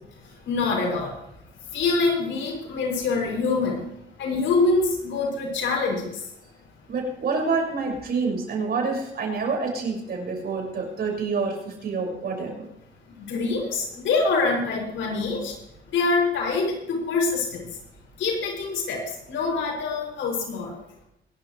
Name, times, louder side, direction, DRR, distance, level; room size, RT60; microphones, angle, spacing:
voice 1, 0.4-1.2 1.7-3.9 4.2-6.3 13.1-15.5 15.9-17.7 18.2-20.8, left 3 dB, 75° left, -1 dB, 7.4 m, -25 dB
voice 2, 6.9-12.7, right 4 dB, 50° right, 0 dB, 6.4 m, -27 dB
25.0 x 12.0 x 3.4 m, 0.80 s
cardioid pair, 90°, 20 cm